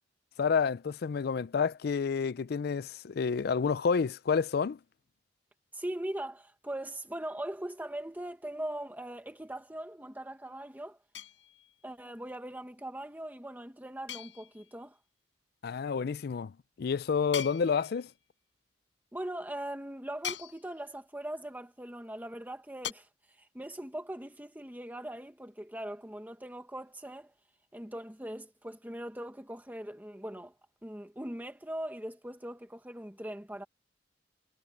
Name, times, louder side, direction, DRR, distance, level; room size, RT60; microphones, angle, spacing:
voice 1, 0.4-4.8 15.6-16.5 16.8-18.1, left 5 dB, 55° left, 0.4 m, -29 dB
voice 2, 5.7-11.0 11.8-15.0 19.1-27.3 27.7-30.5 30.8-33.6, right 1 dB, 10° right, 1.2 m, -40 dB
sound 1, 11.1-11.9 14.1-14.9 17.3-18.3 20.2-21.0 22.8-22.9, left 9 dB, 90° left, 5.2 m, -41 dB
head